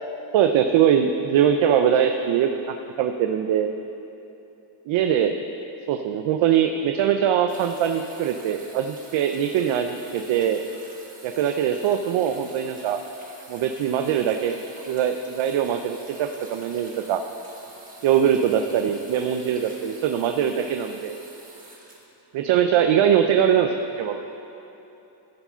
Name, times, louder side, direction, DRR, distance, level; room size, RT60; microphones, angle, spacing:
voice 1, 0.3-3.7 4.9-5.3 5.9-10.6 11.2-13.0 13.5-14.6 14.9-17.2 18.0-21.2 22.3-23.7 24.0-24.2, right 9 dB, 70° right, 6 dB, 0.6 m, -22 dB
sound 1, 7.5-22.8 23.8-23.9, right 2 dB, 15° right, 1.6 m, -47 dB
14.0 x 4.9 x 5.5 m, 2.9 s
cardioid pair, 125°, 49 cm